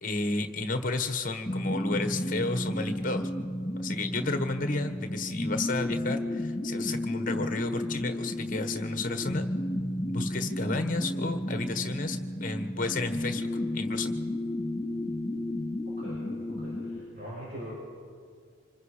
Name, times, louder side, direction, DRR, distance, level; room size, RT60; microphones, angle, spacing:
voice 1, 0.0-3.3 3.8-9.5 10.1-13.5 13.7-14.1, left 3 dB, 40° left, 8 dB, 1.3 m, -32 dB
sound 1, 1.5-17.0, left 1 dB, 25° left, 3.8 m, -33 dB
voice 2, 16.0-17.7, equal, 45° right, -7 dB, 6.6 m, -42 dB
26.0 x 21.5 x 5.0 m, 2.1 s
head